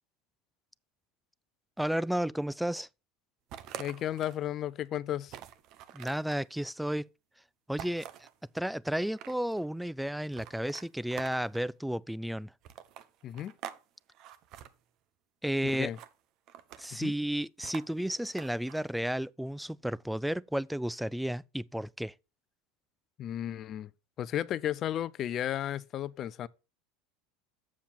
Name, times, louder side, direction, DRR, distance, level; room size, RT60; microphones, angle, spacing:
voice 1, 1.8-2.9 5.9-7.1 7.7-8.3 8.5-12.5 15.4-15.9 16.8-22.1, right 1 dB, ahead, 0.3 m, -32 dB
sound 1, 3.5-4.4 4.9-5.0 5.3-6.4 7.8-8.3 8.9-9.6 10.3-11.7 12.6-13.8 14.1-14.7 15.7-16.1 16.5-17.0 17.6-18.8, right 11 dB, 55° right, 0.9 m, -46 dB
voice 2, 3.8-5.4 13.2-13.5 15.6-16.0 16.9-17.1 23.2-23.9 24.2-26.5, left 11 dB, 45° left, 0.5 m, -34 dB
7.4 x 7.2 x 4.3 m
hypercardioid pair, 100°, 0 cm